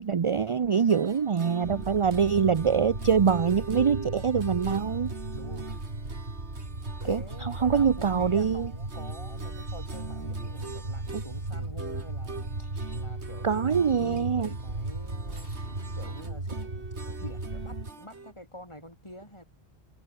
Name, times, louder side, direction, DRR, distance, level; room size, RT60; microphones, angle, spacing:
voice 1, 0.0-5.1 7.1-7.2 7.6-8.7 11.1-11.2 13.4-14.5, right 6 dB, 40° right, 0.5 m, -24 dB
sound 1, 0.7-18.3, right 4 dB, 85° right, 2.8 m, -44 dB
sound 2, 1.6-17.9, right 2 dB, 55° right, 4.1 m, -36 dB
voice 2, 5.3-5.9 7.0-12.5 12.9-15.5 15.9-19.4, left 1 dB, 25° left, 6.3 m, -46 dB
omnidirectional pair, 1.1 m